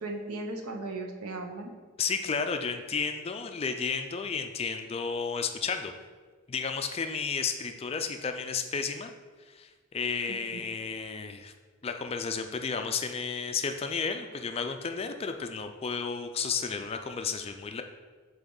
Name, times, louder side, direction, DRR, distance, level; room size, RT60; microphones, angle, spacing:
voice 1, 0.0-1.7 10.3-10.6, right 2 dB, 85° right, 3 dB, 0.8 m, -37 dB
voice 2, 2.0-5.9 6.5-9.1 9.5-11.5 11.8-17.8, left 5 dB, 25° left, 6 dB, 0.3 m, -32 dB
7.9 x 3.5 x 3.9 m, 1.5 s
head